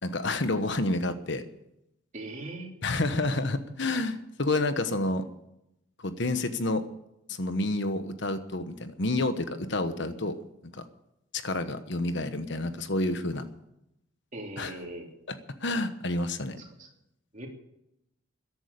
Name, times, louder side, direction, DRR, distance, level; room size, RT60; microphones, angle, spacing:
voice 1, 0.0-1.4 2.8-5.2 6.0-6.8 7.4-10.3 11.3-13.4 14.6-14.8 15.3-15.4 15.6-16.6, left 2 dB, 55° left, 10 dB, 1.2 m, -29 dB
voice 2, 2.1-2.7 14.3-15.1 16.8-16.9 17.3-17.5, right 2 dB, 35° right, 1 dB, 3.3 m, -39 dB
14.5 x 11.0 x 8.5 m, 0.82 s
head